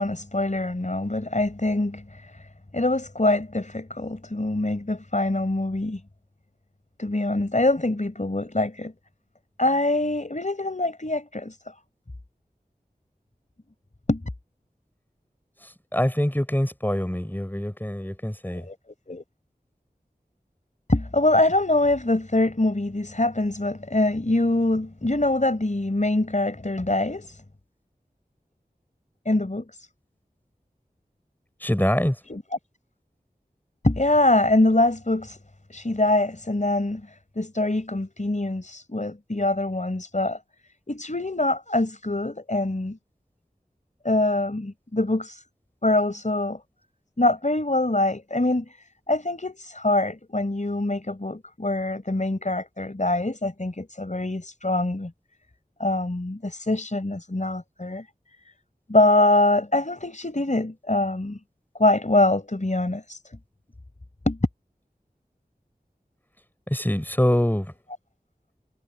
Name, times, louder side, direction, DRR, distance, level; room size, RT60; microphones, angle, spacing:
voice 1, 0.0-2.4 2.7-6.0 7.0-8.9 9.6-11.6 14.1-14.2 18.7-18.8 19.1-19.2 20.9-27.4 29.2-29.9 32.3-32.4 33.8-35.4 35.7-40.4 40.9-43.0 44.0-45.4 45.8-46.6 47.2-48.8 49.1-55.1 55.8-58.1 58.4-58.5 58.9-61.4 61.8-63.2 64.3-64.4, left 2 dB, 50° left, 4.8 m, -24 dB
voice 2, 15.6-18.7 31.6-32.2 66.7-67.7, equal, 10° left, 5.9 m, -24 dB
wide cardioid pair, 50°, 16 cm